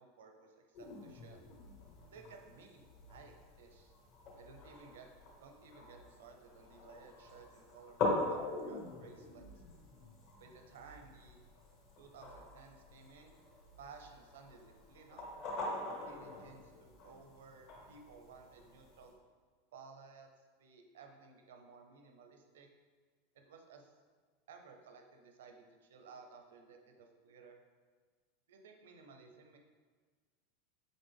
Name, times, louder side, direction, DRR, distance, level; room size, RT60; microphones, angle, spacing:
voice 1, 0.0-1.4 2.1-2.8 3.1-3.9 4.3-5.1 5.4-9.6 10.4-11.4 12.0-13.4 13.8-15.3 16.0-19.1 19.7-22.7 23.5-23.9 24.5-27.6 28.5-29.6, right 5 dB, 85° right, 3 dB, 0.6 m, -57 dB
sound 1, 0.7-19.1, left 2 dB, 55° left, 1.5 m, -44 dB
4.1 x 3.6 x 3.5 m, 1.5 s
supercardioid pair, 125°, 0 cm